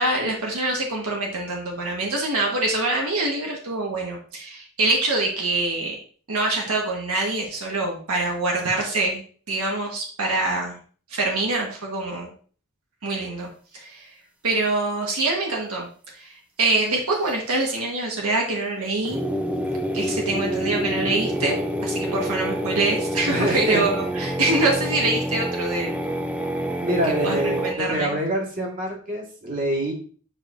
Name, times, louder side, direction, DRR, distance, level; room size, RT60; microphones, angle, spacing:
voice 1, 0.0-6.0 6.3-9.2 9.5-10.8 11.1-12.3 13.0-13.5 13.7-14.1 14.4-15.9 16.2-16.3 16.6-19.2 19.9-25.9 27.2-28.1, right 2 dB, 80° right, -1 dB, 1.5 m, -25 dB
sound 1, 19.0-27.7, equal, 5° right, 0.5 m, -27 dB
voice 2, 23.3-23.8 26.7-29.9, equal, 40° right, -1 dB, 1.9 m, -26 dB
8.6 x 4.6 x 2.6 m, 0.44 s
head